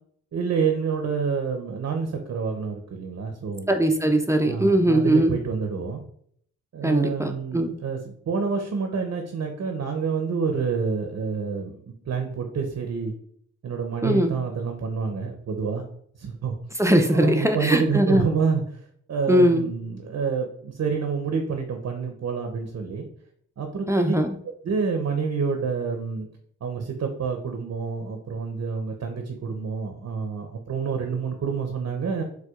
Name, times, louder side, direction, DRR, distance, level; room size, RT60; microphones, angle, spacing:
voice 1, 0.3-3.7 4.4-6.0 6.7-11.8 12.1-13.1 13.6-15.8 16.2-16.5 17.1-18.6 19.1-23.1 23.6-24.1 24.6-26.3 26.6-32.2, right 5 dB, 50° right, 4 dB, 0.6 m, -28 dB
voice 2, 3.7-5.3 6.8-7.7 14.0-14.4 16.8-18.3 19.3-19.6 23.9-24.3, right 1 dB, 10° right, 5 dB, 0.4 m, -20 dB
4.3 x 2.2 x 2.3 m, 0.63 s
cardioid pair, 50°, 32 cm